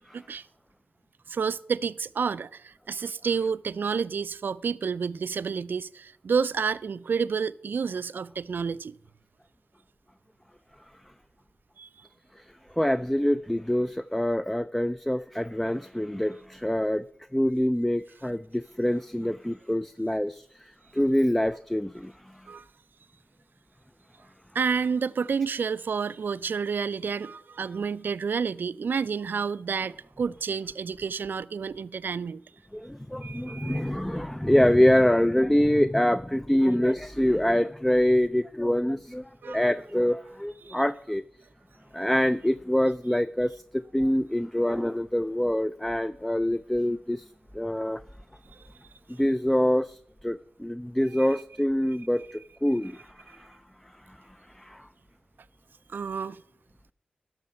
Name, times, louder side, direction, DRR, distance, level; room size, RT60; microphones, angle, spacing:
voice 1, 0.1-0.4 1.3-8.9 11.8-11.9 22.5-22.6 24.5-32.4 33.2-33.8 39.4-39.7 40.6-40.8 48.5-48.6 51.2-51.3 55.9-56.4, right 6 dB, 70° right, 0.3 m, -30 dB
voice 2, 12.4-17.0 17.3-22.5 32.7-41.2 41.9-48.0 49.1-53.6 53.8-54.9, left 1 dB, 5° left, 0.3 m, -25 dB
12.0 x 6.0 x 5.4 m
cardioid pair, 40°, 4 cm